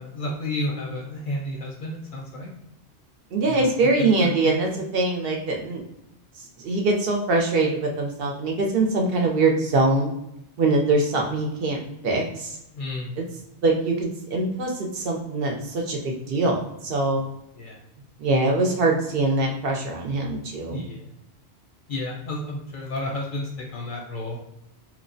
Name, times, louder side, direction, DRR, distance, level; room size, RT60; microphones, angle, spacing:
voice 1, 0.0-2.5 3.5-3.7 4.0-4.7 12.7-13.1 17.6-17.8 20.7-21.1 21.9-24.4, left 1 dB, 60° left, -1 dB, 0.6 m, -31 dB
voice 2, 3.3-5.8 6.6-10.1 10.6-11.8 12.0-12.6 13.2-13.3 13.6-17.3 18.2-20.9, right 2 dB, 65° right, 1 dB, 0.7 m, -23 dB
2.9 x 2.1 x 2.5 m, 0.81 s
omnidirectional pair, 1.2 m